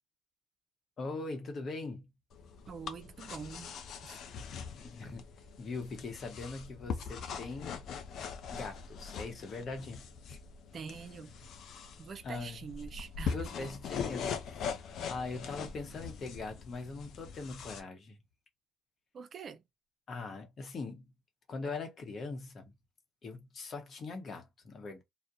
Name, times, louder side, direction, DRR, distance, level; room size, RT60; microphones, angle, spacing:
voice 1, 1.0-2.0 4.8-5.3 5.6-7.7 8.5-10.0 10.3-10.4 12.2-12.6 13.3-18.2 20.1-21.0 21.5-22.7 23.2-25.0, left 3 dB, 50° left, 0.8 m, -41 dB
sound 1, 2.3-17.8, left 6 dB, 65° left, 0.5 m, -42 dB
voice 2, 2.7-3.7 4.0-4.2 10.7-11.3 12.0-13.7 19.1-19.6, right 6 dB, 50° right, 0.4 m, -45 dB
2.3 x 2.1 x 2.7 m
hypercardioid pair, 60°, 0 cm